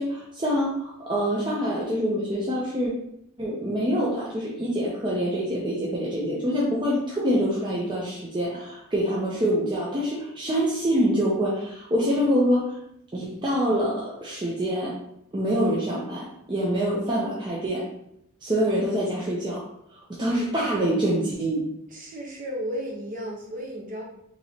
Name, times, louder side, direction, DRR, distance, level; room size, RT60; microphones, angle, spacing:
voice 1, 0.0-2.9 3.4-12.8 13.1-15.0 15.3-17.8 18.4-19.6 20.1-21.6, equal, 20° right, -5 dB, 0.6 m, -25 dB
voice 2, 21.9-24.0, equal, 40° right, -1 dB, 0.9 m, -34 dB
4.3 x 2.9 x 2.8 m, 0.76 s
head